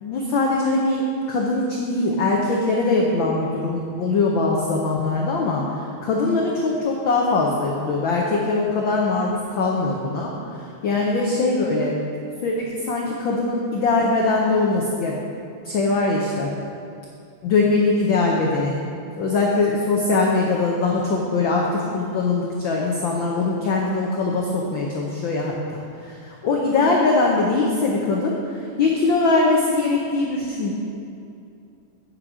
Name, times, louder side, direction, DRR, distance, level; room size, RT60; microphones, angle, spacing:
voice 1, 0.0-5.6 6.0-10.3 10.8-11.9 12.4-15.1 15.7-16.5 17.4-18.7 19.2-25.8 26.4-28.4 28.8-30.7, left 3 dB, 90° left, -2 dB, 1.0 m, -21 dB
8.2 x 7.6 x 4.9 m, 2.6 s
omnidirectional pair, 3.3 m